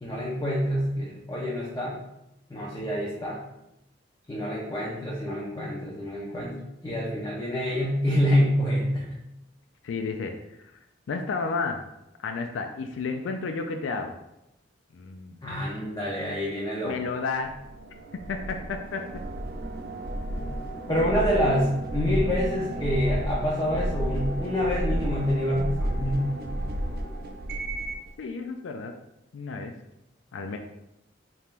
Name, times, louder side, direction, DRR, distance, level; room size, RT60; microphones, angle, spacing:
voice 1, 0.0-2.0 2.5-3.4 4.3-9.1 15.4-17.0 20.9-26.4, equal, 20° left, -5 dB, 0.6 m, -27 dB
voice 2, 9.8-10.3 10.6-10.7 11.1-11.8 12.2-14.2 14.9-15.4 16.8-17.5 18.3-19.0 28.2-28.9 29.3-29.7 30.3-30.6, left 4 dB, 85° left, 5 dB, 0.4 m, -31 dB
sound 1, 17.5-28.1, right 1 dB, 55° right, 0.4 m, -32 dB
4.3 x 3.5 x 2.5 m, 0.86 s
head